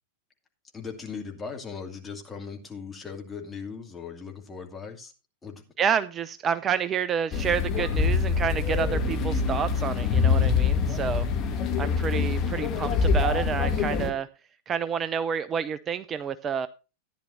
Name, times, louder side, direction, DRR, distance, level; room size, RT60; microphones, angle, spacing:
voice 1, 0.7-5.1 5.4-5.6, left 5 dB, 15° left, 2 dB, 2.6 m, -38 dB
voice 2, 5.8-11.3 11.8-14.3 14.7-16.7, right 7 dB, 25° right, 14 dB, 0.5 m, -29 dB
sound 1, 7.3-14.1, left 5 dB, 35° left, 2.3 m, -25 dB
14.5 x 10.5 x 2.7 m, 0.31 s
figure-of-eight pair, 90°, 0 cm